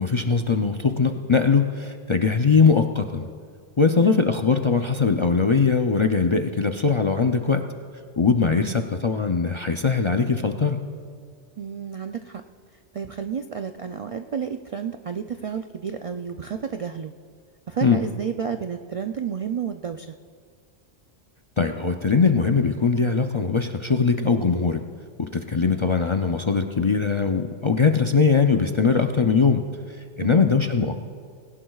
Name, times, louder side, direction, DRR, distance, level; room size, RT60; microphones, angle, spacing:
voice 1, 0.0-3.3 3.8-7.6 8.2-10.8 17.8-18.0 21.6-24.8 25.2-29.6 30.2-31.0, left 5 dB, 40° left, 4 dB, 0.4 m, -21 dB
voice 2, 3.9-4.4 8.6-8.8 11.6-12.4 12.7-17.1 17.7-20.1 30.2-30.6, right 7 dB, 65° right, 6 dB, 0.3 m, -31 dB
20.0 x 17.5 x 2.3 m, 2.1 s
omnidirectional pair, 1.2 m